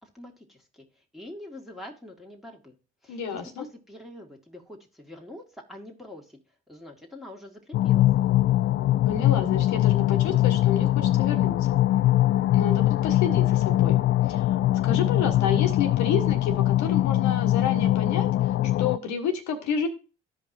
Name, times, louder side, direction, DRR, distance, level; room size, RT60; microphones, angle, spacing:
voice 1, 0.0-0.8 1.1-2.7 3.0-6.4 6.7-8.1, left 1 dB, ahead, -1 dB, 1.8 m, -44 dB
voice 2, 3.1-3.7 9.0-11.7 12.5-14.6 14.8-19.9, left 6 dB, 65° left, 6 dB, 1.3 m, -30 dB
sound 1, 7.7-19.0, left 14 dB, 45° left, 0.4 m, -22 dB
13.5 x 5.2 x 2.6 m, 0.33 s
hypercardioid pair, 45°, 30 cm